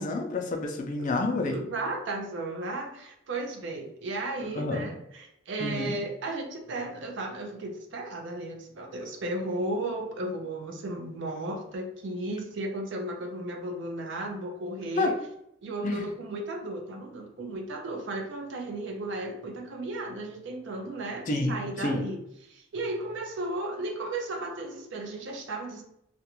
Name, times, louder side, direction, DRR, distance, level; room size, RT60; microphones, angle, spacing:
voice 1, 0.0-1.6 4.5-4.9 5.6-5.9 14.9-15.1 15.8-16.1 21.3-22.0, left 2 dB, 40° left, 2 dB, 0.4 m, -29 dB
voice 2, 1.4-15.2 15.6-22.2 22.5-25.8, right 2 dB, 65° right, 3 dB, 0.5 m, -35 dB
2.4 x 2.2 x 2.9 m, 0.76 s
head